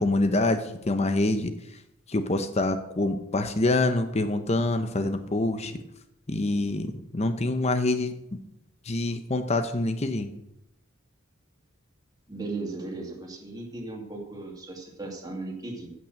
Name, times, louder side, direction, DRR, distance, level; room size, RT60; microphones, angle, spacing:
voice 1, 0.0-1.8 2.1-5.7 6.3-8.1 8.8-10.3, left 2 dB, 30° left, 8 dB, 0.8 m, -26 dB
voice 2, 12.3-15.9, right 2 dB, 20° right, 0 dB, 2.4 m, -36 dB
15.5 x 5.9 x 7.7 m, 0.85 s
head